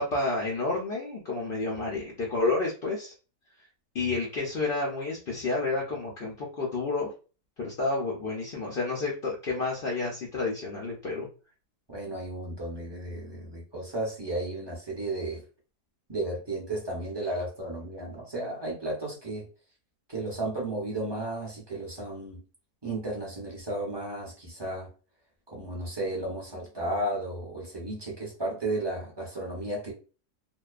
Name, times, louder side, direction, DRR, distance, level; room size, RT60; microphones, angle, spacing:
voice 1, 0.0-3.1 3.9-7.1 7.6-11.3, left 3 dB, 80° left, -3 dB, 0.5 m, -30 dB
voice 2, 11.9-15.4 16.1-19.5 20.1-22.4 22.8-24.9 25.5-29.9, right 1 dB, 30° right, -3 dB, 0.5 m, -34 dB
2.7 x 2.2 x 2.4 m, 0.35 s
omnidirectional pair, 1.7 m